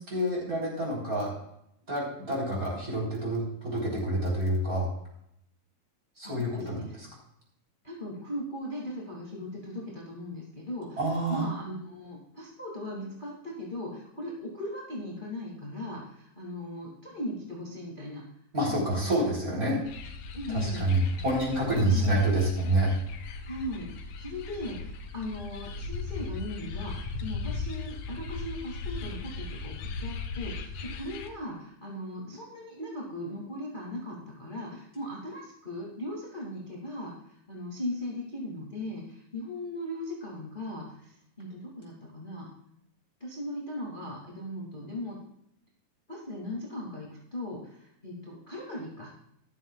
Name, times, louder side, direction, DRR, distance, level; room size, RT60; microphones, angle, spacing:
voice 1, 0.1-1.3 1.9-4.9 6.2-7.1 11.0-11.5 18.5-19.8 20.5-22.9, right 1 dB, 25° right, -3 dB, 4.2 m, -27 dB
voice 2, 6.2-7.0 7.8-11.0 11.3-18.2 18.6-19.9 20.3-21.2 21.8-22.1 23.5-37.1 37.5-42.5 43.2-45.2 46.1-49.1, left 1 dB, 15° left, -4 dB, 2.1 m, -38 dB
sound 1, 19.8-31.3, left 4 dB, 70° left, 2.5 m, -38 dB
13.5 x 12.0 x 2.4 m, 0.74 s
omnidirectional pair, 4.0 m